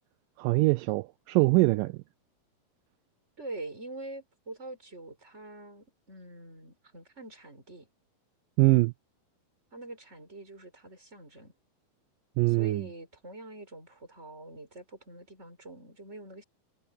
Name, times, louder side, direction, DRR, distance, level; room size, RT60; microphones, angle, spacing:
voice 1, 0.4-2.0 8.6-8.9 12.4-12.9, right 22 dB, 80° right, 2.0 m, -23 dB
voice 2, 3.4-7.9 9.7-11.5 12.5-16.4, right 2 dB, 15° right, 6.1 m, -44 dB
omnidirectional pair, 4.3 m